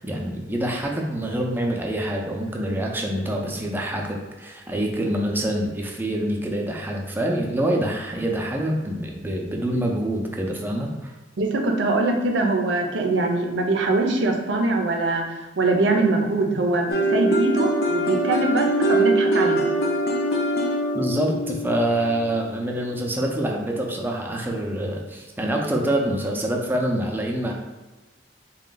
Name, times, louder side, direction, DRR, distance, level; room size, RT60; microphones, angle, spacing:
voice 1, 0.0-11.1 20.9-27.5, right 1 dB, 10° right, 0 dB, 0.5 m, -26 dB
voice 2, 11.4-15.2 15.6-19.6, right 2 dB, 90° right, 2 dB, 0.6 m, -22 dB
sound 1, 16.9-22.7, right 1 dB, 55° left, 0.6 m, -23 dB
3.7 x 2.2 x 3.8 m, 1.2 s
head